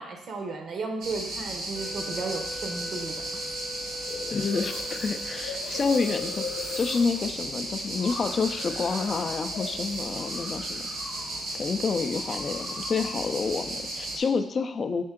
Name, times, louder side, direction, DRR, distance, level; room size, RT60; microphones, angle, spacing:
voice 1, 0.0-3.2, right 3 dB, 55° right, 3 dB, 0.6 m, -34 dB
sound 1, 1.0-14.2, right 1 dB, 80° right, 1.0 m, -35 dB
Wind instrument woodwind instrument, 1.7-5.6, equal, 15° left, 0.7 m, -42 dB
sound 2, 4.1-11.5 11.7-13.3, left 5 dB, 85° left, 0.7 m, -41 dB
voice 2, 4.3-10.8 11.6-15.0, left 5 dB, 45° left, 8 dB, 0.3 m, -29 dB
4.3 x 2.8 x 3.6 m, 0.79 s
cardioid pair, 90°, 0 cm